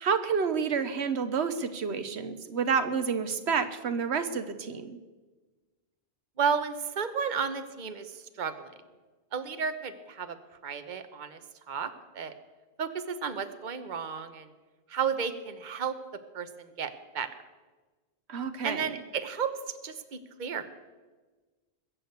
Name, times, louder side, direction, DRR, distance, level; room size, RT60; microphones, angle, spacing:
voice 1, 0.0-5.0 18.3-18.9, right 6 dB, 85° right, 10 dB, 1.3 m, -29 dB
voice 2, 6.4-8.7 9.3-10.4 10.6-11.4 11.7-12.3 12.8-14.5 14.9-15.9 16.3-17.3 18.6-19.5 19.8-20.8, right 6 dB, 50° right, 10 dB, 1.1 m, -33 dB
21.5 x 7.6 x 8.1 m, 1.3 s
omnidirectional pair, 1.1 m